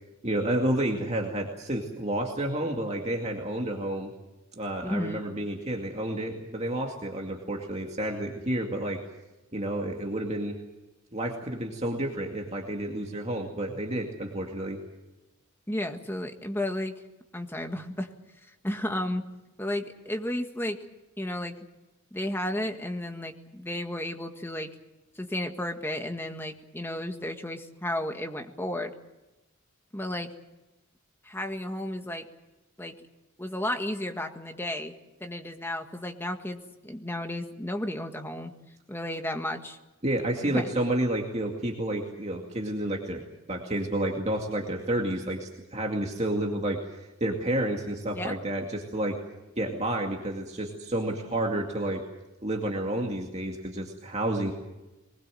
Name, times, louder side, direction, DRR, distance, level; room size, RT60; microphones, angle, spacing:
voice 1, 0.2-4.1 4.5-9.0 9.5-10.6 11.1-14.8 40.0-43.2 43.5-49.2 49.6-52.0 52.4-54.5, right 1 dB, 30° right, 1 dB, 2.3 m, -30 dB
voice 2, 4.8-5.2 15.7-17.0 17.3-18.1 18.6-19.2 19.6-20.8 21.2-21.5 22.1-24.7 25.2-28.9 29.9-30.3 31.2-32.3 32.8-32.9 33.4-34.9 35.2-38.5 38.9-39.8 40.4-40.8 48.1-48.4, left 1 dB, 10° left, 5 dB, 1.7 m, -33 dB
23.0 x 20.5 x 7.7 m, 1.0 s
head